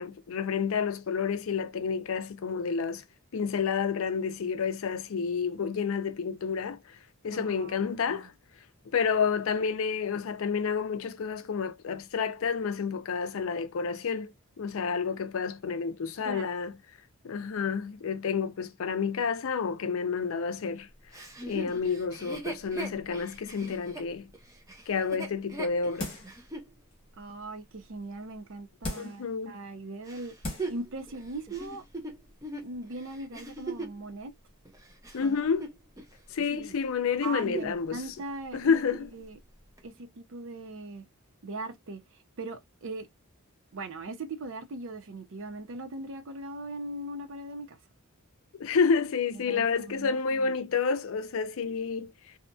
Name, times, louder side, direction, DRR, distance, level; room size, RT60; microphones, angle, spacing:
voice 1, 0.0-3.0 3.3-6.8 7.2-8.3 8.9-16.7 17.2-20.9 21.4-24.3 24.9-26.1 29.0-29.6 35.1-35.7 36.3-38.0 38.5-39.1 48.6-52.1, left 5 dB, 65° left, 0.4 m, -29 dB
voice 2, 7.3-7.8 8.0-8.3 16.2-16.5 27.2-30.3 30.7-31.8 32.6-34.3 35.2-35.5 36.5-36.8 37.2-38.8 39.1-39.4 39.8-41.1 41.4-42.0 42.4-43.1 43.7-47.8 49.5-50.5, right 2 dB, 60° right, 0.5 m, -40 dB
Chuckle chortle, 21.1-26.7 27.3-27.4 30.1-34.0 34.7-36.1 36.4-36.7 37.1-37.9 38.2-38.3 38.7-39.1 39.8-39.9, right 2 dB, 15° right, 0.5 m, -40 dB
sound 1, 26.0-26.4 26.9-27.0 28.8-29.3 30.0-30.1 30.4-30.8 31.2-31.3, left 1 dB, 25° left, 1.1 m, -37 dB
2.8 x 2.5 x 2.2 m
head